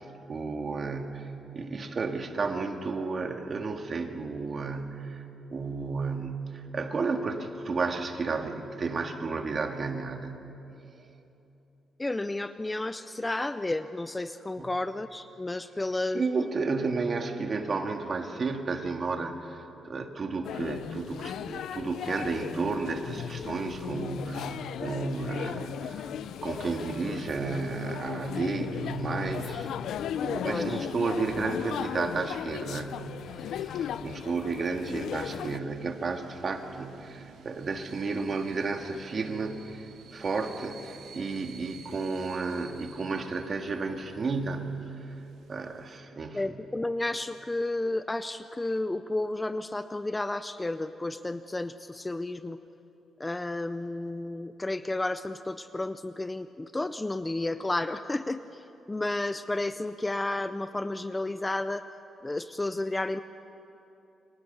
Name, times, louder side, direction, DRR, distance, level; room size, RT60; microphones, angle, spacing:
voice 1, 0.0-5.2 5.5-10.5 11.0-11.1 14.6-14.7 16.1-26.1 26.4-29.7 30.2-33.1 33.5-45.0 45.5-46.5, right 4 dB, 35° right, 4 dB, 1.9 m, -32 dB
voice 2, 12.0-16.2 30.4-30.8 46.3-52.6 53.2-61.8 62.2-63.2, left 2 dB, 10° left, 11 dB, 0.5 m, -32 dB
sound 1, 20.4-35.6, left 9 dB, 80° left, 0.6 m, -36 dB
sound 2, 34.7-46.0, right 7 dB, 75° right, 1.8 m, -52 dB
29.0 x 24.5 x 6.8 m, 2.9 s
cardioid pair, 160°, 0 cm